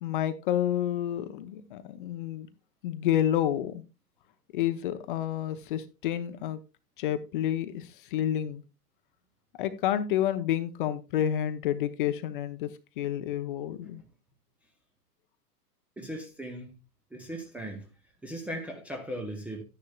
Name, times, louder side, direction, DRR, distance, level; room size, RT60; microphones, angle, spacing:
voice 1, 0.0-2.5 2.8-3.8 4.5-6.6 7.0-8.6 9.6-14.0, left 11 dB, 30° left, 0.8 m, -29 dB
voice 2, 16.0-16.7 17.1-17.9 18.2-19.6, right 1 dB, 5° right, 0.7 m, -38 dB
12.0 x 10.0 x 2.3 m
figure-of-eight pair, 110°, 49 cm